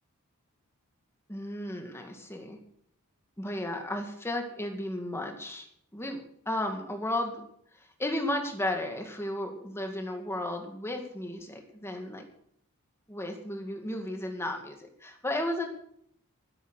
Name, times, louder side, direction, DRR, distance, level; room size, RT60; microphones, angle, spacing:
voice 1, 1.3-2.6 3.4-5.7 5.9-7.4 7.7-12.2 13.1-15.7, left 1 dB, 10° left, 3 dB, 2.1 m, -34 dB
13.0 x 10.0 x 6.5 m, 0.68 s
head